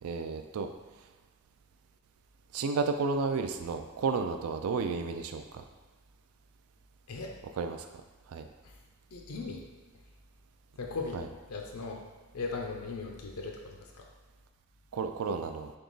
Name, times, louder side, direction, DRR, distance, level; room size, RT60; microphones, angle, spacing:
voice 1, 0.0-0.7 2.5-5.6 7.6-7.9 8.3-8.4 11.1-11.2 14.9-15.7, right 4 dB, 70° right, 6 dB, 0.3 m, -32 dB
voice 2, 9.1-9.6 10.8-11.2 11.5-12.0 12.3-14.1, left 4 dB, 75° left, 1 dB, 0.5 m, -38 dB
3.6 x 2.8 x 3.9 m, 1.3 s
head